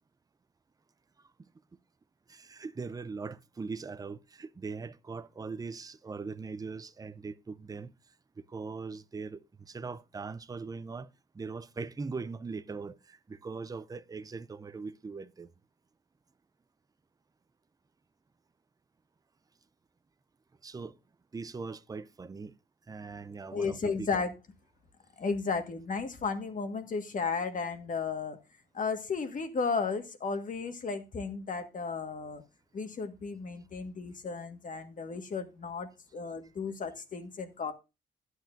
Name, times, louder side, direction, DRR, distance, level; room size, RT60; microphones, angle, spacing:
voice 1, 2.3-7.9 8.4-11.1 11.3-15.5 20.6-20.9 21.3-22.5 22.9-24.1, right 4 dB, 20° right, 0.5 m, -40 dB
voice 2, 23.5-24.3 25.2-28.4 28.7-32.4 32.7-37.7, left 4 dB, 40° left, 1.6 m, -34 dB
12.0 x 9.4 x 2.6 m
cardioid pair, 90°, 20 cm